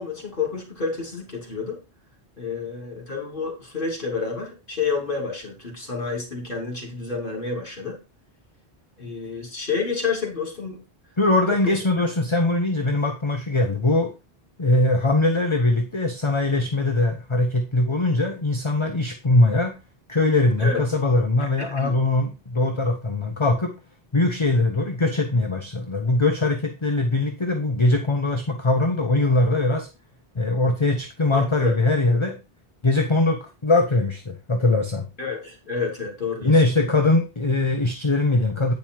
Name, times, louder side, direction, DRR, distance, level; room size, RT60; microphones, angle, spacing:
voice 1, 0.0-1.8 2.4-8.0 9.0-10.8 11.6-11.8 20.6-20.8 21.7-22.0 31.3-31.7 35.2-36.6, left 5 dB, 55° left, 1 dB, 3.2 m, -29 dB
voice 2, 11.2-14.1 14.6-19.7 20.1-23.7 24.1-29.9 30.3-32.4 32.8-35.1 36.4-38.7, left 2 dB, 30° left, 4 dB, 1.0 m, -21 dB
9.2 x 5.4 x 4.7 m, 0.29 s
omnidirectional pair, 1.0 m